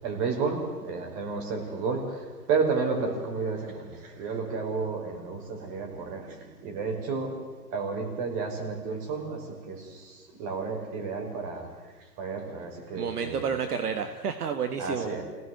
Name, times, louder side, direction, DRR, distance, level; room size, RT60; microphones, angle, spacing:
voice 1, 0.0-7.4 7.7-11.7 12.2-13.5 14.8-15.2, right 4 dB, 35° right, 2 dB, 5.4 m, -31 dB
voice 2, 12.9-15.1, right 6 dB, 65° right, 7 dB, 1.8 m, -30 dB
28.0 x 17.5 x 8.0 m, 1.4 s
figure-of-eight pair, 125°, 49 cm